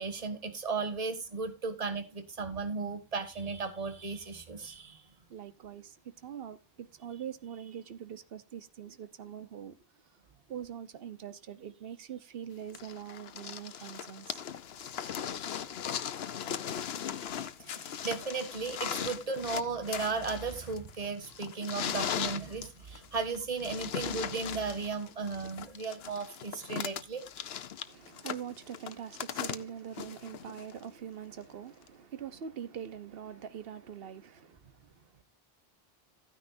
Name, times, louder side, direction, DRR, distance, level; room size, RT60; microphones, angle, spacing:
voice 1, 0.0-5.0 17.6-27.2, right 4 dB, 35° right, 1.5 m, -35 dB
voice 2, 5.3-9.8 10.0-10.2 10.5-14.4 27.8-35.1, right 9 dB, 70° right, 1.1 m, -43 dB
sound 1, 12.7-30.8 31.9-32.0, left 9 dB, 80° left, 1.0 m, -38 dB
14.5 x 9.7 x 2.6 m
omnidirectional pair, 1.0 m